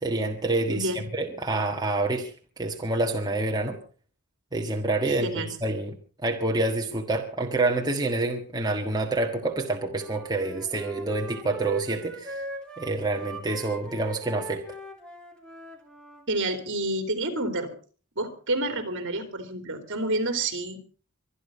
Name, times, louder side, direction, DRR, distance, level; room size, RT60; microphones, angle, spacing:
voice 1, 0.0-3.8 4.5-5.3 5.6-6.0 6.2-12.4 12.8-14.6, right 2 dB, 20° right, 1 dB, 1.6 m, -27 dB
voice 2, 5.1-5.5 16.3-17.7 18.1-20.8, right 2 dB, 55° right, 9 dB, 3.4 m, -29 dB
Wind instrument woodwind instrument, 9.9-16.2, right 1 dB, 5° left, 3.4 m, -41 dB
24.5 x 10.5 x 5.4 m, 0.40 s
head